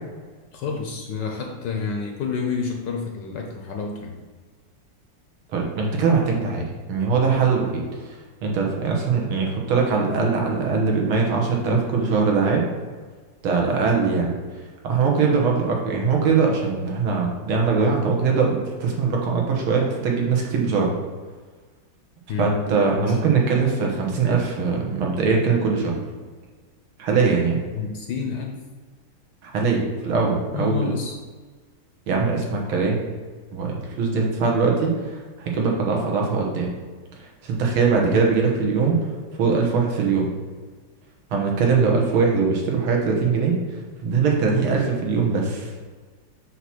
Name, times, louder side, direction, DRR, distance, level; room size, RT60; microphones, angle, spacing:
voice 1, 0.5-4.1 22.3-22.6 23.0-23.2 27.7-28.6 30.5-31.1, left 5 dB, 65° left, 2 dB, 1.2 m, -29 dB
voice 2, 5.5-12.6 13.4-14.3 14.8-20.9 22.4-25.9 27.0-27.6 29.4-30.9 32.1-33.0 33.5-36.7 37.2-39.0 39.4-40.3 41.3-43.5 44.0-45.7, right 5 dB, 75° right, 0 dB, 2.0 m, -21 dB
7.8 x 2.9 x 5.9 m, 1.5 s
omnidirectional pair, 2.4 m